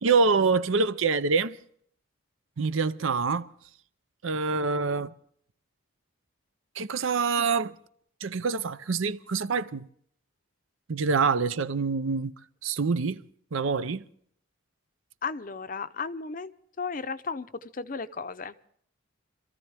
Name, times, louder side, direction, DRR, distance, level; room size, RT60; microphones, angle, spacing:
voice 1, 0.0-1.6 2.6-3.5 4.2-5.1 6.8-7.8 8.2-9.9 10.9-12.3 12.6-13.2 13.5-14.0, right 4 dB, 75° right, 0.6 m, -26 dB
voice 2, 15.2-16.5 16.8-18.7, left 4 dB, 40° left, 0.6 m, -35 dB
26.5 x 14.0 x 3.4 m
head